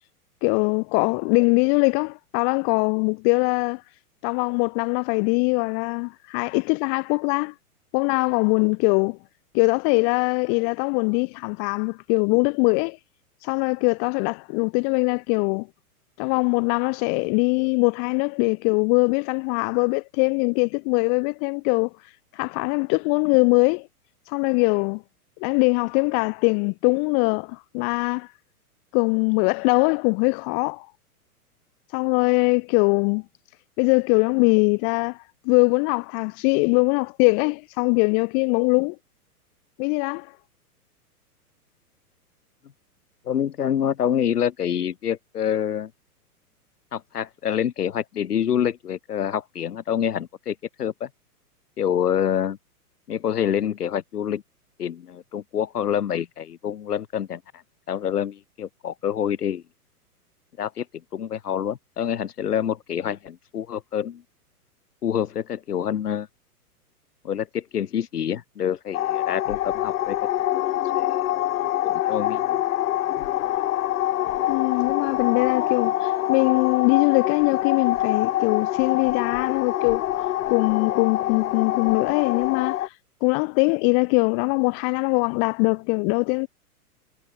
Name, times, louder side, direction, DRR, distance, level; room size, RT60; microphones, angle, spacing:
voice 1, 0.4-3.8 4.2-7.5 7.9-9.2 9.5-13.0 13.4-15.7 16.2-21.9 22.4-23.9 24.3-25.0 25.4-28.3 28.9-30.9 31.9-33.2 33.8-35.2 35.4-39.0 39.8-40.3 74.5-80.0 80.5-82.9 83.2-86.5, left 40 dB or more, 20° left, 0.5 m, -22 dB
voice 2, 43.2-45.9 46.9-51.1 51.8-52.6 53.1-54.4 54.8-57.4 57.9-59.6 60.6-60.8 61.1-64.2 65.0-66.3 67.2-70.2 70.5-70.7 70.9-71.2 71.8-72.6, left 9 dB, 75° left, 1.4 m, -26 dB
sound 1, 68.9-82.9, left 13 dB, 60° left, 1.1 m, -25 dB
hypercardioid pair, 115°, 46 cm